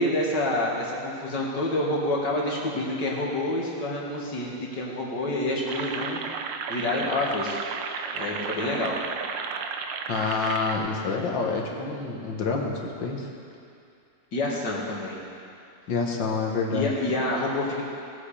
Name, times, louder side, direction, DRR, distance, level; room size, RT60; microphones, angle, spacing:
voice 1, 0.0-6.2 6.7-7.7 8.1-9.0 14.3-15.2 16.7-17.9, left 1 dB, 70° left, -3 dB, 2.6 m, -28 dB
sound 1, 5.7-10.8, right 6 dB, 80° right, 1.5 m, -33 dB
voice 2, 10.1-13.3 15.9-16.9, left 4 dB, 85° left, 0 dB, 2.2 m, -27 dB
19.5 x 8.1 x 5.0 m, 2.5 s
omnidirectional pair, 1.9 m